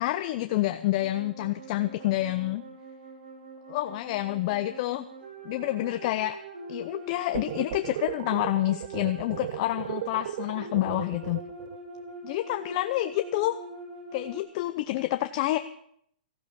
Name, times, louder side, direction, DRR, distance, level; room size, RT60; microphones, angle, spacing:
voice 1, 0.0-2.6 3.7-5.0 5.4-6.4 6.7-11.4 12.2-13.6 14.1-15.6, left 16 dB, 40° left, 9 dB, 0.6 m, -28 dB
sound 1, 1.0-14.4, right 2 dB, 85° right, 7.2 m, -43 dB
sound 2, 7.3-11.8, right 12 dB, 50° right, 0.5 m, -36 dB
15.0 x 11.0 x 6.9 m, 0.69 s
hypercardioid pair, 155°, 5 cm